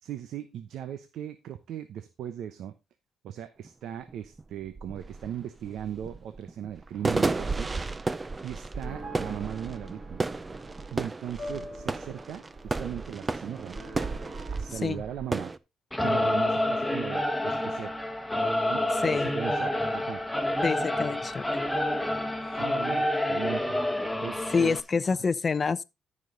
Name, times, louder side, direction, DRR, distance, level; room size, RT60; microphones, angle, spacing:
voice 1, 0.0-2.7 3.2-7.7 8.4-10.2 10.9-13.8 14.5-15.5 16.0-18.0 18.7-20.2 22.6-23.8 24.2-24.8, right 10 dB, 75° right, 0.8 m, -38 dB
sound 1, 3.6-3.7 4.1-15.6, right 3 dB, 25° right, 0.6 m, -33 dB
sound 2, 8.0-11.0 11.4-15.5, right 1 dB, 50° right, 6.0 m, -45 dB
Singing / Musical instrument, 15.9-24.8, left 1 dB, 5° left, 1.5 m, -28 dB
voice 2, 20.6-21.4 24.5-25.8, left 5 dB, 35° left, 0.6 m, -27 dB
13.5 x 5.4 x 3.9 m
cardioid pair, 90°, 0 cm